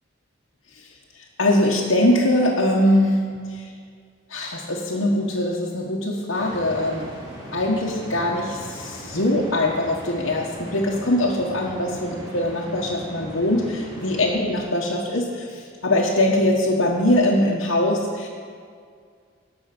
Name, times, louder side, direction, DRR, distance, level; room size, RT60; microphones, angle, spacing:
voice 1, 1.4-3.2 4.3-7.1 7.5-15.5 15.8-18.3, left 1 dB, 75° left, -4 dB, 1.3 m, -22 dB
sound 1, 6.3-14.3, equal, 20° right, 3.8 m, -39 dB
17.0 x 6.2 x 6.1 m, 2.1 s
head